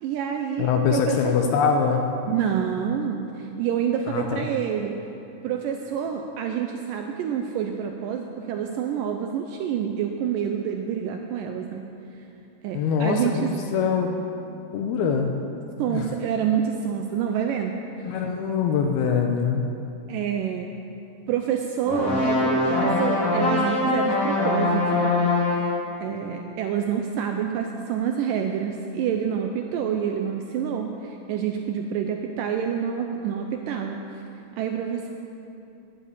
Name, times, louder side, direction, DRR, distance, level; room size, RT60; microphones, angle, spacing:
voice 1, 0.0-1.4 2.3-5.0 5.4-11.9 12.6-13.5 15.8-17.8 18.1-18.2 20.1-20.7 21.3-25.1 25.6-34.0 34.6-35.1, right 8 dB, 90° right, 4 dB, 1.9 m, -27 dB
voice 2, 0.6-2.1 4.1-4.5 12.7-14.1 14.7-15.3 15.9-16.1 18.1-19.6, left 6 dB, 80° left, 3 dB, 2.6 m, -23 dB
sound 1, 21.9-25.8, left 2 dB, 40° left, 1.2 m, -23 dB
10.5 x 9.7 x 8.4 m, 2.8 s
omnidirectional pair, 4.6 m